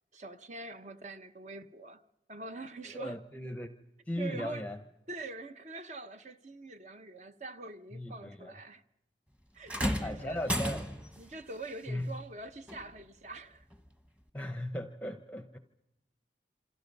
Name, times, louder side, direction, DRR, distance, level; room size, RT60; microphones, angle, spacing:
voice 1, 0.1-2.0 2.3-3.2 4.2-4.7 5.1-8.8 9.5-10.7 11.2-13.6, right 3 dB, 40° right, 1.0 m, -44 dB
voice 2, 2.9-3.7 4.1-4.8 7.9-8.6 10.0-10.8 11.9-12.2 14.3-15.6, left 1 dB, 10° left, 0.8 m, -37 dB
sound 1, 9.7-11.2 12.7-12.8 13.7-13.8, equal, 5° right, 1.3 m, -33 dB
27.5 x 26.5 x 5.4 m
head